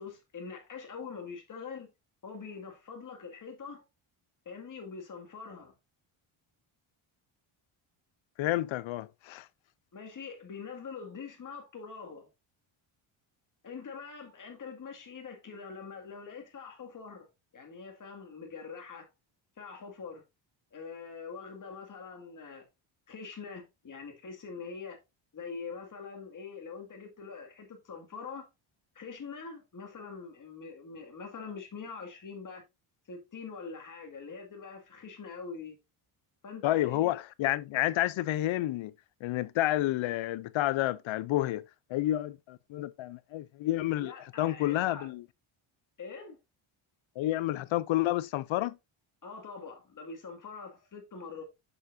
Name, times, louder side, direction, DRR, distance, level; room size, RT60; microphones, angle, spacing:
voice 1, 0.0-1.9 2.2-3.8 4.5-5.7 9.9-12.3 13.6-17.3 17.5-19.1 19.6-20.2 20.7-22.7 23.1-25.0 25.3-28.5 29.0-32.6 33.1-35.8 36.4-37.1 44.0-45.1 46.0-46.4 49.2-51.4, left 5 dB, 40° left, 2.2 m, -44 dB
voice 2, 8.4-9.5 36.6-38.9 39.2-41.6 41.9-44.1 44.4-45.2 47.2-48.8, left 15 dB, 65° left, 0.6 m, -30 dB
7.0 x 6.8 x 2.6 m
cardioid pair, 135°, 50 cm